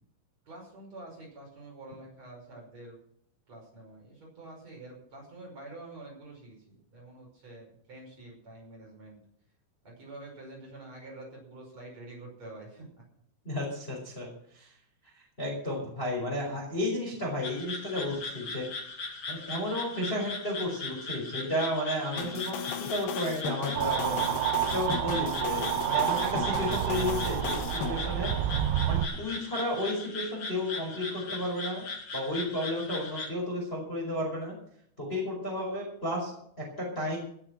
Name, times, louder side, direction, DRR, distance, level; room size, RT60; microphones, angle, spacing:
voice 1, 0.4-3.0 3.5-9.2 9.8-12.9, right 2 dB, 30° right, -2 dB, 6.3 m, -47 dB
voice 2, 13.4-14.7 15.1-18.7 19.3-24.3 24.7-28.3 28.9-31.9 32.1-34.5 35.0-37.2, left 1 dB, 10° left, -1 dB, 4.3 m, -33 dB
sound 1, 17.4-33.3, left 3 dB, 50° left, 1.7 m, -39 dB
sound 2, 22.2-27.9, left 9 dB, 70° left, 2.7 m, -36 dB
sound 3, 23.7-29.1, right 13 dB, 80° right, 2.8 m, -29 dB
18.0 x 8.7 x 6.2 m, 0.67 s
omnidirectional pair, 5.9 m